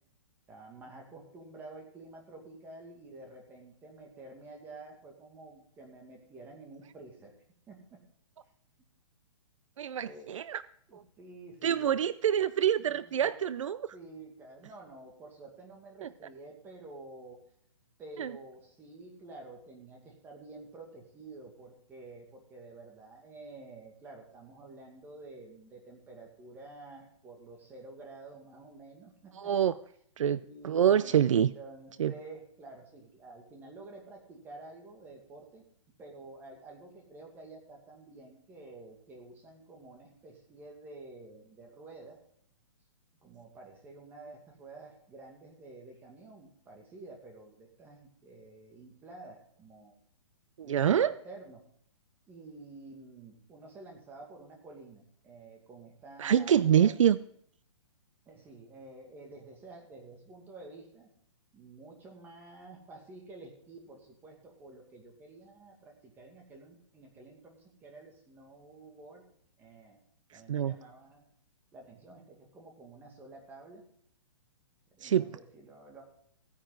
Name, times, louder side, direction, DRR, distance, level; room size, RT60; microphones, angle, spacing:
voice 1, 0.5-7.3 7.7-8.0 10.0-10.3 10.9-12.0 12.8-13.4 13.9-17.4 18.0-29.7 30.4-31.2 31.5-35.7 36.0-42.2 43.2-50.0 50.6-51.6 52.3-57.0 58.3-61.1 61.5-69.2 69.6-70.0 70.3-71.2 71.7-73.8 74.9-76.0, right 2 dB, 10° right, 1 dB, 2.2 m, -50 dB
voice 2, 9.8-10.6 10.9-11.0 11.6-13.9 16.0-16.1 18.2-18.3 29.4-29.7 30.2-31.5 32.0-32.1 50.6-51.1 56.2-57.2 70.5-70.7 75.0-75.4, right 9 dB, 75° right, 16 dB, 0.5 m, -26 dB
16.0 x 9.6 x 3.9 m, 0.67 s
hypercardioid pair, 165°, 17 cm